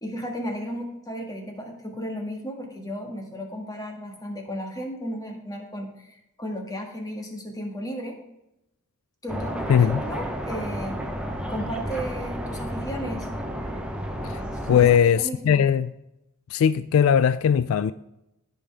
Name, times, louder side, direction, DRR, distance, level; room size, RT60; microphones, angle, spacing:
voice 1, 0.0-8.2 9.2-11.0 11.5-13.3 14.6-14.9 15.2-15.7, equal, 15° left, 2 dB, 1.6 m, -34 dB
sound 1, 9.3-15.0, equal, 5° right, 0.8 m, -31 dB
voice 2, 9.7-10.0 14.2-14.4 14.7-15.9 16.5-17.9, left 8 dB, 70° left, 14 dB, 0.3 m, -19 dB
15.0 x 5.3 x 3.4 m, 0.87 s
head